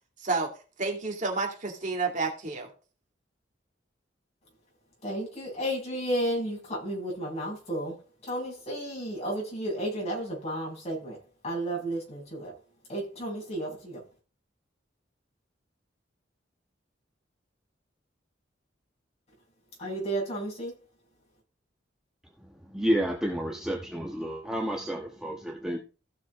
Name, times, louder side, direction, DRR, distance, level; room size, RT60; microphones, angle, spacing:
voice 1, 0.2-0.5 0.8-2.7, right 3 dB, 45° right, 2.3 m, -30 dB
voice 2, 5.0-12.5 12.9-14.0 19.8-20.8, right 1 dB, 35° left, 6.8 m, -33 dB
voice 3, 22.7-25.8, equal, 5° right, 1.3 m, -30 dB
15.5 x 6.6 x 3.7 m
head